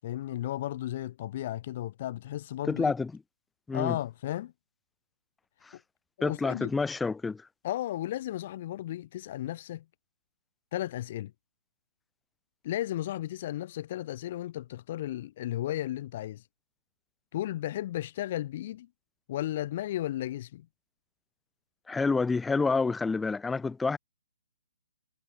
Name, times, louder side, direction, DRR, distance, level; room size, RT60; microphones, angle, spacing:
voice 1, 0.0-2.9 3.7-4.5 6.2-6.7 7.6-9.8 10.7-11.3 12.6-16.4 17.3-18.9 19.3-20.7, left 13 dB, 40° left, 6.3 m, -34 dB
voice 2, 2.7-3.1 3.7-4.0 5.6-5.7 6.2-7.5 21.9-24.0, left 4 dB, 5° left, 2.4 m, -28 dB
hypercardioid pair, 160°, 0 cm